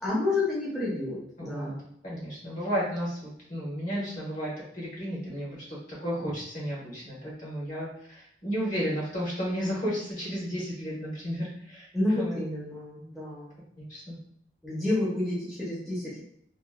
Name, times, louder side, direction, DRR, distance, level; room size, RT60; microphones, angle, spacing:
voice 1, 0.0-1.8 11.9-13.5 14.6-16.2, left 2 dB, ahead, -8 dB, 0.7 m, -30 dB
voice 2, 1.4-1.7 2.0-11.9 12.2-12.4 13.9-14.2, equal, 50° left, -6 dB, 1.3 m, -33 dB
2.9 x 2.1 x 2.3 m, 0.70 s
head